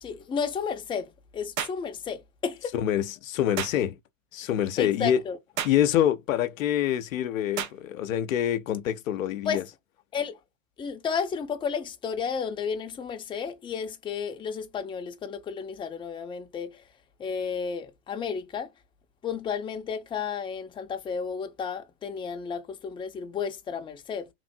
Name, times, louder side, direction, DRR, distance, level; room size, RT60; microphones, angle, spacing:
voice 1, 0.0-2.7 4.8-5.4 9.4-9.6 10.1-10.4 10.8-16.8 17.2-18.7 19.2-24.3, left 6 dB, 15° left, 0.4 m, -32 dB
sound 1, 1.6-1.8 3.6-3.8 5.6-5.8 7.6-7.8, right 9 dB, 85° right, 0.8 m, -32 dB
voice 2, 2.7-4.0 4.3-5.2 5.6-9.6, left 11 dB, 90° left, 0.5 m, -26 dB
3.0 x 2.5 x 2.6 m
hypercardioid pair, 100°, 39 cm